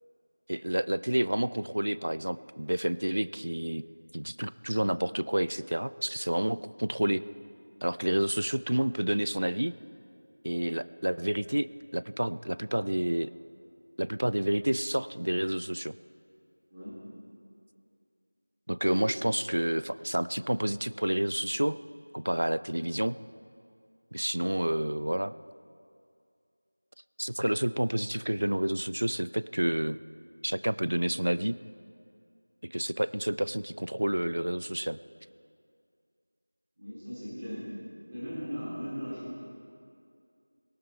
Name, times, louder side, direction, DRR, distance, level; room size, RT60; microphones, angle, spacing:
voice 1, 0.5-3.8 4.1-7.2 7.8-9.7 10.4-11.7 11.9-13.3 14.0-15.9 18.7-21.8 22.1-23.2 24.1-25.3 27.2-30.0 30.4-31.6 32.6-35.0, right 1 dB, 50° right, 16 dB, 0.3 m, -29 dB
voice 2, 36.8-37.7 38.1-39.3, equal, 10° right, -10 dB, 2.6 m, -37 dB
18.0 x 17.5 x 3.3 m, 2.4 s
figure-of-eight pair, 180°, 0 cm